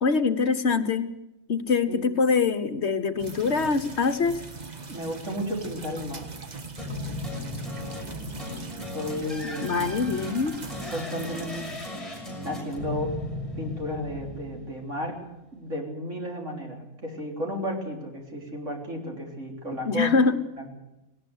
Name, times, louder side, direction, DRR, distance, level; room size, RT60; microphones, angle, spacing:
voice 1, 0.0-1.1 1.5-4.4 9.4-10.6 19.8-20.4, left 4 dB, 55° left, 11 dB, 1.1 m, -24 dB
sound 1, 3.2-11.9, right 3 dB, 35° right, 1.2 m, -41 dB
voice 2, 4.9-6.3 8.9-9.8 10.9-11.7 12.4-13.1 13.6-15.2 15.5-20.1 20.6-20.7, equal, 60° right, 0 dB, 4.2 m, -33 dB
sound 2, 6.8-15.0, left 1 dB, ahead, 6.2 m, -36 dB
19.0 x 18.5 x 8.0 m, 0.97 s
omnidirectional pair, 1.4 m